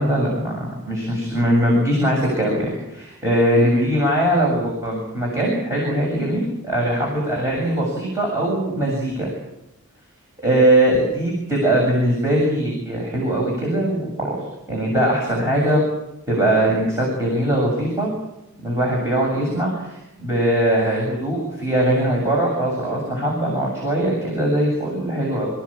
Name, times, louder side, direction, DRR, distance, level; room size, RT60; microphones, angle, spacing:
voice 1, 0.0-9.3 10.4-14.4 14.7-15.9 16.3-18.1 18.6-25.5, right 1 dB, 15° right, -3 dB, 7.5 m, -21 dB
28.0 x 16.0 x 8.8 m, 0.88 s
head